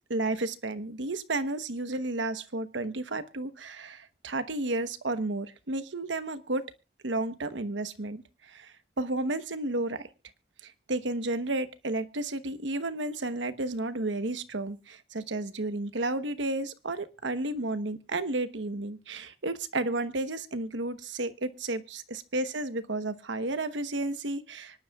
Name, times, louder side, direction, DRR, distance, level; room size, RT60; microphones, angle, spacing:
voice 1, 0.1-6.6 7.0-10.1 10.6-22.0 22.3-24.8, right 2 dB, 80° right, 11 dB, 1.0 m, -32 dB
25.0 x 10.5 x 2.4 m, 0.28 s
head